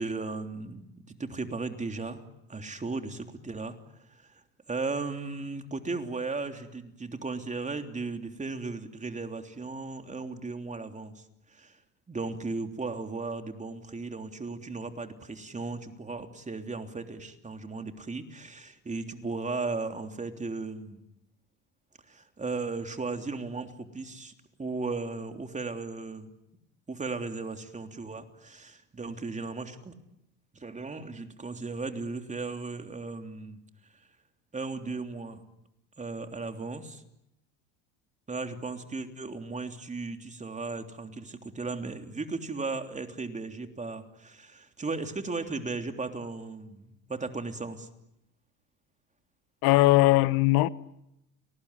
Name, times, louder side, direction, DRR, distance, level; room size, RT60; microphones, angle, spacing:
voice 1, 0.0-2.2 2.5-11.8 12.1-21.0 22.1-24.3 24.6-26.3 26.9-29.9 30.5-33.6 33.9-34.1 34.5-35.4 36.0-37.0 38.3-47.9, right 3 dB, 20° right, 3.3 m, -36 dB
voice 2, 49.6-50.7, left 18 dB, 65° left, 1.2 m, -20 dB
29.5 x 19.5 x 9.9 m
supercardioid pair, 90°, 38 cm